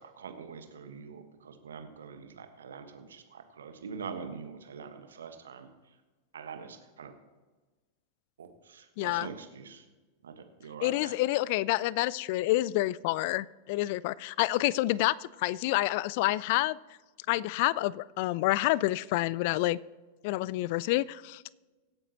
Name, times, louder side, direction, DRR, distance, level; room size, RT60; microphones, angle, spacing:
voice 1, 0.0-6.0 6.3-7.1 8.4-9.9 10.2-11.2, right 6 dB, 65° right, 7 dB, 1.5 m, -44 dB
voice 2, 9.0-9.3 10.8-16.8 17.3-19.8 20.2-21.5, left 17 dB, 50° left, 22 dB, 0.3 m, -28 dB
24.5 x 8.8 x 3.0 m, 1.3 s
figure-of-eight pair, 90°, 0 cm